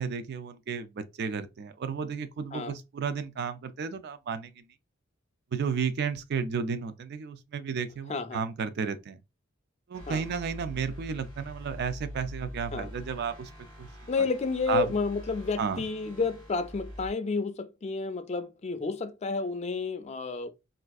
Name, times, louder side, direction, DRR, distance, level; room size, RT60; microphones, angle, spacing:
voice 1, 0.0-4.6 5.5-9.2 9.9-13.5 13.8-13.9 14.7-14.9 15.6-15.8, right 6 dB, 55° right, 0.4 m, -33 dB
voice 2, 8.1-8.4 10.1-10.2 12.7-12.9 14.1-20.5, left 4 dB, 35° left, 0.4 m, -31 dB
sound 1, 9.9-17.1, equal, 75° right, 1.7 m, -44 dB
4.3 x 2.4 x 2.3 m
head